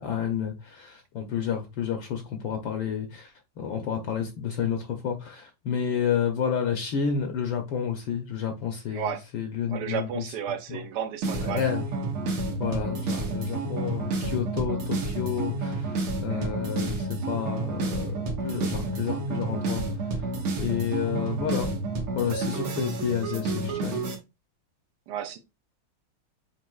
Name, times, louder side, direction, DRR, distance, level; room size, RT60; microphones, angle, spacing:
voice 1, 0.0-10.3 10.7-10.8 11.4-11.9 12.6-20.3 20.6-21.7 22.1-24.0, left 8 dB, 75° left, 1.4 m, -30 dB
voice 2, 9.7-11.6 16.3-16.6 25.1-25.4, right 8 dB, 65° right, 1.1 m, -33 dB
sound 1, 11.2-24.1, right 3 dB, 85° right, 2.0 m, -30 dB
7.3 x 2.9 x 2.3 m
omnidirectional pair, 2.3 m